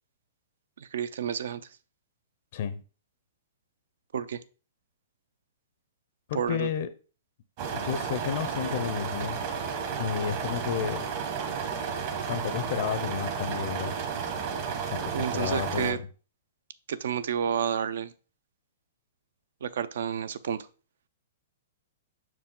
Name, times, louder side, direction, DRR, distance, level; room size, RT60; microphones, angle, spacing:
voice 1, 0.8-1.6 4.1-4.4 6.3-6.7 15.1-16.0 16.9-18.1 19.6-20.7, right 8 dB, 70° right, 0.5 m, -30 dB
voice 2, 6.3-6.9 7.7-9.4 10.0-11.1 12.3-13.9 14.9-16.0, left 8 dB, 50° left, 0.5 m, -31 dB
sound 1, 7.6-15.9, right 6 dB, 40° right, 1.1 m, -32 dB
5.9 x 4.7 x 3.7 m
hypercardioid pair, 165°, 0 cm